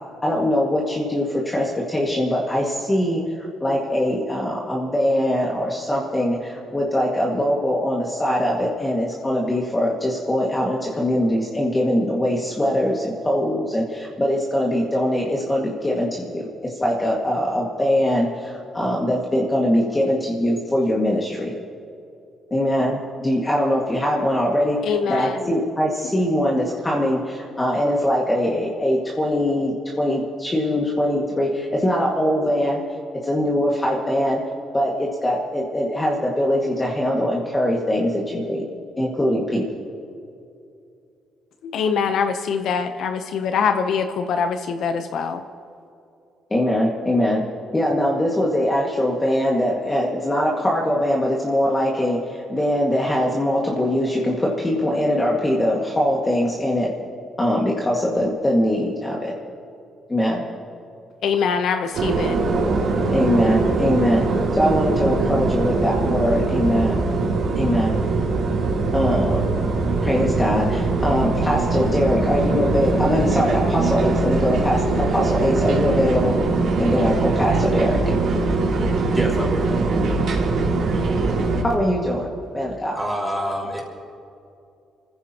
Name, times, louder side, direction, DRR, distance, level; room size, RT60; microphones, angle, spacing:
voice 1, 0.2-3.2 3.6-21.5 22.5-24.8 25.1-32.8 33.1-34.4 34.7-38.6 39.0-39.7 46.5-47.5 47.7-56.9 57.4-59.4 60.1-60.4 63.1-64.3 64.5-67.1 67.6-68.0 68.9-69.5 70.0-76.4 76.8-78.0 81.6-83.0, left 1 dB, 20° left, -3 dB, 2.0 m, -22 dB
voice 2, 24.8-25.6 41.6-45.4 61.2-62.4, left 6 dB, 75° left, 7 dB, 0.8 m, -23 dB
sound 1, 61.9-81.6, right 3 dB, 70° right, 3.2 m, -22 dB
voice 3, 79.1-79.6 82.9-83.8, equal, 5° right, -3 dB, 5.0 m, -26 dB
28.0 x 15.0 x 3.0 m, 2.6 s
cardioid pair, 90°, 0 cm